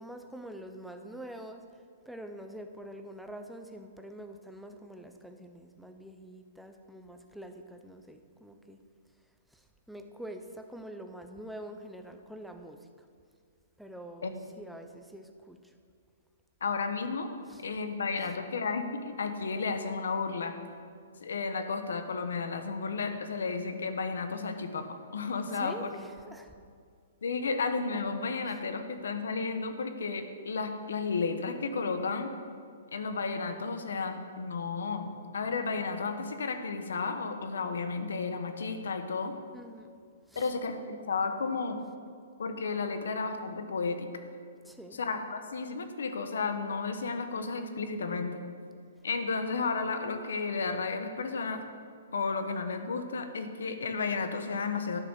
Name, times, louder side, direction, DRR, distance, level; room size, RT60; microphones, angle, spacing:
voice 1, 0.0-8.8 9.5-13.1 13.8-15.7 17.5-17.6 18.2-18.3 25.4-26.5 28.5-28.6 39.5-39.9 40.3-40.5 44.6-45.0, right 1 dB, ahead, 5 dB, 0.4 m, -46 dB
voice 2, 16.6-17.3 17.6-20.5 21.2-24.8 25.1-25.9 27.2-32.3 32.9-39.3 40.3-41.8 42.4-44.1 45.0-48.3 49.0-51.6 52.1-55.0, left 4 dB, 85° left, 8 dB, 1.1 m, -33 dB
10.5 x 6.4 x 6.3 m, 2.2 s
hypercardioid pair, 180°, 0 cm